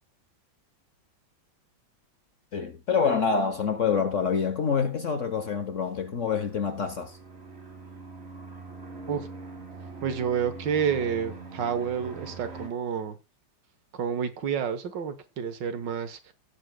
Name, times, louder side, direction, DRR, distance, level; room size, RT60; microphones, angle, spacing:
voice 1, 2.5-7.2, left 6 dB, 50° left, 1.1 m, -26 dB
sound 1, 5.4-12.7, right 3 dB, 35° right, 2.0 m, -43 dB
voice 2, 10.0-13.2 13.9-16.3, right 7 dB, 70° right, 1.8 m, -29 dB
17.5 x 7.3 x 2.2 m
omnidirectional pair, 2.1 m